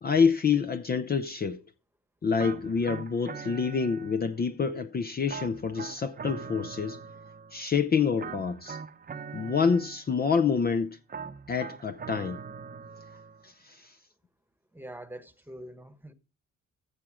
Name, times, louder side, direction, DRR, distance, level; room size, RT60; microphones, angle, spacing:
voice 1, 0.0-1.6 2.2-7.0 7.5-8.8 9.3-11.0 11.5-12.4 13.4-13.9, left 6 dB, 30° left, 0.6 m, -27 dB
sound 1, 2.4-4.5 5.3-7.7 8.2-10.3 11.1-13.5, right 6 dB, 30° right, 0.8 m, -42 dB
voice 2, 14.7-16.1, right 1 dB, 5° right, 1.3 m, -44 dB
15.0 x 6.3 x 5.0 m
cardioid pair, 90°, 30 cm